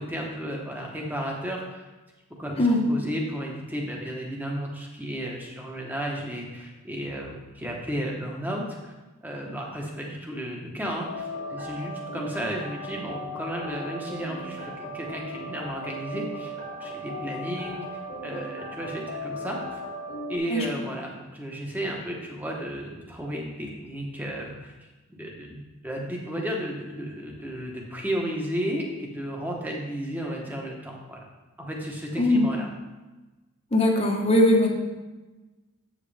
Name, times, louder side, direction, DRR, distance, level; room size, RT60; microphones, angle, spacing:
voice 1, 0.0-1.8 2.4-2.6 2.9-8.9 9.2-19.8 20.3-24.7 25.1-31.2 31.6-32.7, equal, 10° right, -1 dB, 1.1 m, -33 dB
sound 1, 11.0-20.4, equal, 70° left, 1.7 m, -37 dB
voice 2, 32.2-32.5 33.7-34.7, left 1 dB, 25° left, 1 dB, 1.0 m, -20 dB
8.2 x 7.5 x 3.4 m, 1.2 s
head